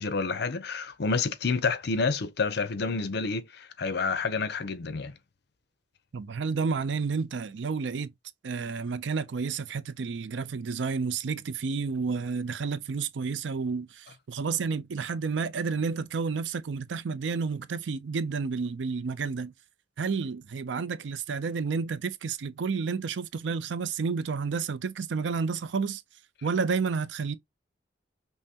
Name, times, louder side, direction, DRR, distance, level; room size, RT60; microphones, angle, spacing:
voice 1, 0.0-5.1, left 4 dB, 65° left, 0.6 m, -29 dB
voice 2, 6.1-8.1 8.4-19.5 20.0-26.0 26.4-27.3, right 5 dB, 85° right, 0.5 m, -30 dB
5.4 x 2.1 x 2.8 m
head